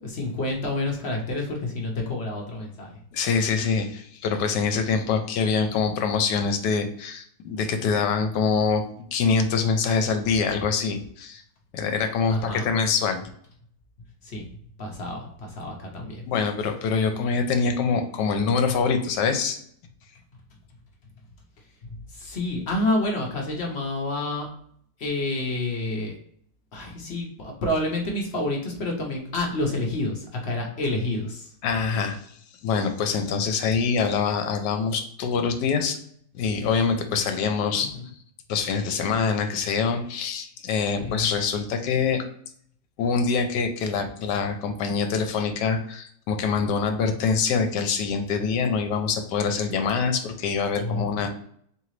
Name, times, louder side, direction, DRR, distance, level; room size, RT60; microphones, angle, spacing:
voice 1, 0.0-3.0 12.3-12.7 14.2-14.4 14.8-16.2 21.6-24.5 25.0-26.2 26.7-31.5 37.7-38.1 41.0-41.3 50.8-51.4, left 2 dB, 55° left, 1 dB, 0.7 m, -29 dB
voice 2, 3.1-11.4 11.7-13.2 16.3-19.6 31.6-32.3 32.6-36.0 36.3-37.9 38.5-42.2 43.0-51.4, left 5 dB, 75° left, 6 dB, 1.2 m, -25 dB
3.8 x 3.2 x 3.1 m, 0.64 s
omnidirectional pair, 1.9 m